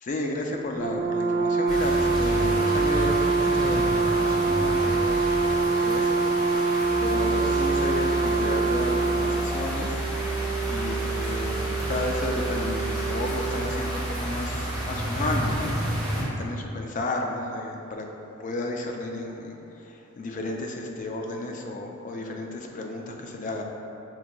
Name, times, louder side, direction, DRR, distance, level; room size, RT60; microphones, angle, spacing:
voice 1, 0.0-6.7 7.0-10.0 10.6-15.7 16.4-18.1 18.4-23.6, left 2 dB, 35° left, 2 dB, 0.3 m, -33 dB
Brass instrument, 0.7-9.5, right 4 dB, 65° right, 0.4 m, -24 dB
sound 1, 1.7-16.2, equal, ahead, 1.3 m, -32 dB
sound 2, 6.7-16.2, right 3 dB, 55° left, 1.1 m, -32 dB
5.7 x 2.8 x 2.2 m, 2.9 s
head